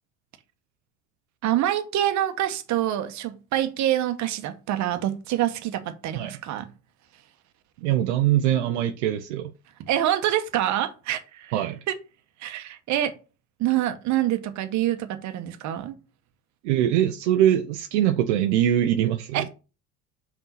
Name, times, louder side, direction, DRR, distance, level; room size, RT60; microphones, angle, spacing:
voice 1, 1.4-6.7 9.8-11.5 11.9-12.0 12.4-13.1 13.6-16.0 19.3-19.5, right 12 dB, 50° right, 1.2 m, -26 dB
voice 2, 7.8-9.5 11.5-11.8 16.6-19.5, right 11 dB, 70° right, 0.8 m, -22 dB
5.6 x 3.6 x 5.7 m
hypercardioid pair, 70°, 36 cm